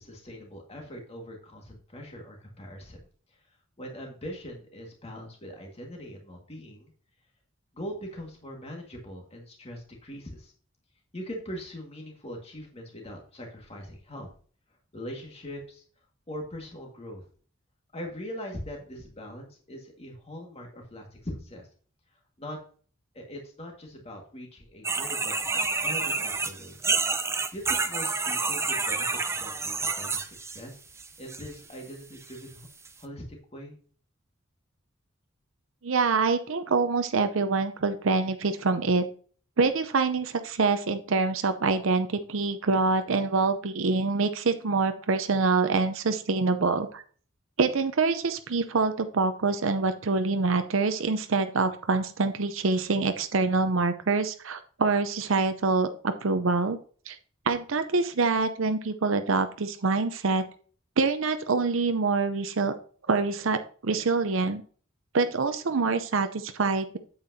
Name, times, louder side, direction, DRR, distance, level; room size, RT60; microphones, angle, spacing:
voice 1, 0.0-3.0 3.8-6.9 7.7-10.5 11.1-14.3 14.9-15.8 16.3-17.2 17.9-21.7 22.4-22.6 23.1-25.3 25.8-26.8 27.5-30.8 31.2-32.7 33.0-33.7, equal, 30° left, 0 dB, 1.9 m, -41 dB
sound 1, 24.8-30.6 31.0-31.5 32.2-32.3 32.8-32.9, right 4 dB, 15° right, 0.6 m, -29 dB
voice 2, 35.8-39.0 39.6-47.0 47.6-56.8 57.1-57.2 57.5-60.4 61.0-62.7 63.1-64.6 65.1-67.0, right 4 dB, 70° right, 9 dB, 0.7 m, -25 dB
8.7 x 8.0 x 2.8 m, 0.43 s
head